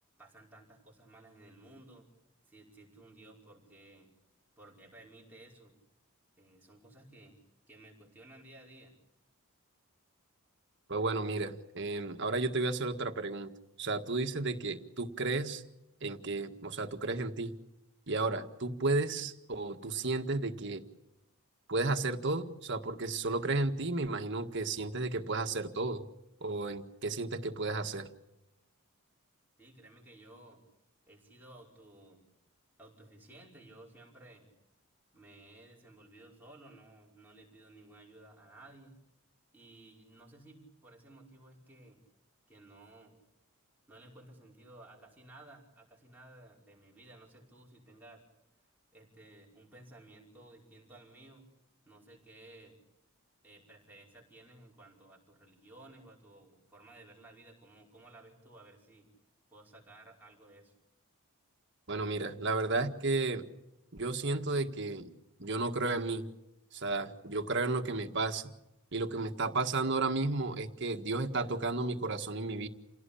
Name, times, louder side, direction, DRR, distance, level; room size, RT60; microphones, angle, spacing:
voice 1, 0.2-2.1 2.5-4.1 4.6-5.8 6.4-7.4 7.7-8.9 29.6-30.6 31.1-32.2 32.8-34.5 35.1-38.9 39.5-42.0 42.5-43.2 43.9-48.2 48.6-51.5 51.8-52.8 53.4-59.1 59.5-60.7, right 2 dB, 10° right, -4 dB, 5.5 m, -56 dB
voice 2, 10.9-13.5 13.8-15.6 16.0-17.5 18.1-20.8 21.7-26.0 26.4-28.1 61.9-63.5 63.9-65.1 65.4-66.3 66.7-68.5 68.9-72.7, right 3 dB, 55° right, 6 dB, 1.8 m, -33 dB
29.0 x 17.5 x 8.6 m, 0.91 s
head